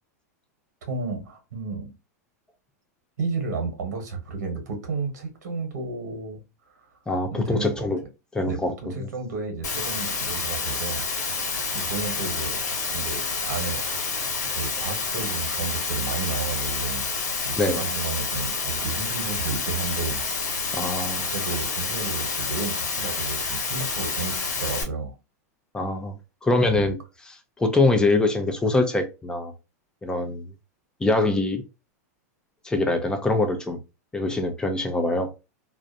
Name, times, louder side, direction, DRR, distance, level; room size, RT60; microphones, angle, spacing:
voice 1, 0.9-1.9 3.2-6.9 7.3-7.9 8.4-11.5 11.7-12.6 12.9-13.8 14.5-17.0 17.4-20.2 21.3-25.1 26.6-26.9, right 4 dB, 80° right, 1.1 m, -32 dB
voice 2, 7.1-8.0 8.3-9.1 17.5-17.8 20.7-21.3 25.7-26.1 26.4-27.0 27.3-29.5 30.0-30.5 31.0-31.6 32.6-33.8 34.1-35.3, left 2 dB, 10° left, 0.5 m, -24 dB
Water, 9.6-24.8, left 4 dB, 85° left, 1.0 m, -29 dB
2.4 x 2.1 x 2.6 m
hypercardioid pair, 120°, 9 cm